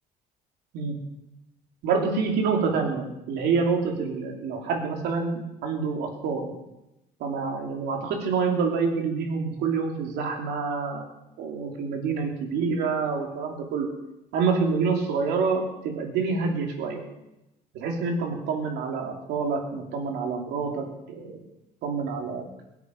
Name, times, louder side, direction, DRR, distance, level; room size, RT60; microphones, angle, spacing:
voice 1, 1.8-6.5 7.2-11.0 11.4-13.9 14.3-17.0 17.7-21.3 21.8-22.5, right 5 dB, 85° right, 1 dB, 3.2 m, -27 dB
22.5 x 8.2 x 5.4 m, 0.92 s
cardioid pair, 110°, 17 cm